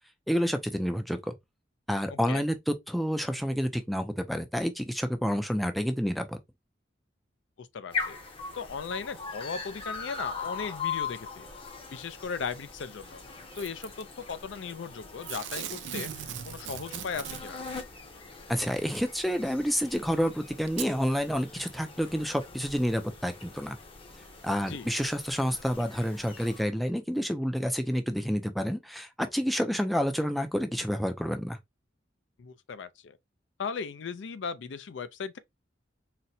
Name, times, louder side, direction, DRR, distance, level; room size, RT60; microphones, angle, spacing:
voice 1, 0.3-1.3 1.9-6.4 18.5-23.8 24.4-31.6, equal, ahead, 0.3 m, -29 dB
voice 2, 2.1-2.5 7.6-8.2 8.5-11.5 11.9-13.2 13.6-17.6 24.7-24.9 32.4-33.2 33.6-35.4, left 5 dB, 75° left, 0.4 m, -37 dB
sound 1, 7.9-26.6, left 5 dB, 30° left, 0.7 m, -41 dB
Packing tape duct tape / Tearing, 13.6-14.0 15.2-17.8 19.0-19.1 20.0-20.1 20.7-20.9 21.6-21.7, right 9 dB, 80° right, 0.4 m, -39 dB
4.1 x 2.1 x 2.6 m
head